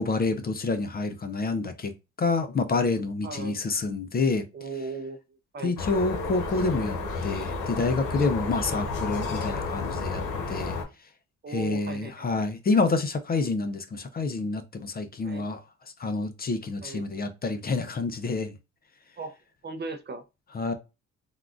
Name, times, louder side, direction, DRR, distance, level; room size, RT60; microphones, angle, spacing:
voice 1, 0.0-1.9 2.2-4.4 5.6-7.0 7.2-10.8 11.5-15.6 16.0-18.5 20.5-20.7, left 3 dB, 30° left, 0.5 m, -28 dB
voice 2, 3.2-3.6 4.5-5.2 5.5-5.7 8.6-8.8 10.5-10.7 11.4-12.3 15.2-15.5 16.8-17.0 19.2-19.4 19.6-20.2, right 3 dB, 35° right, 0.5 m, -37 dB
sound 1, 5.8-10.8, left 3 dB, 80° left, 1.0 m, -31 dB
3.5 x 2.3 x 2.4 m
cardioid pair, 90°, 30 cm